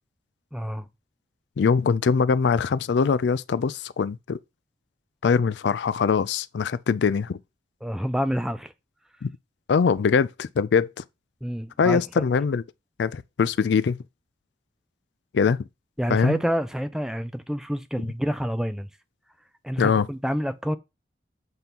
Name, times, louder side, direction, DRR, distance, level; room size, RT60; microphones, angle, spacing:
voice 1, 0.5-0.9 7.8-8.7 11.4-12.3 16.0-18.9 19.6-20.8, equal, 5° right, 0.4 m, -28 dB
voice 2, 1.6-4.4 5.2-7.4 9.2-9.3 9.7-11.0 11.8-12.6 13.0-14.0 15.3-15.6 16.1-16.4 19.8-20.1, left 5 dB, 75° left, 0.4 m, -22 dB
7.9 x 2.9 x 5.3 m
head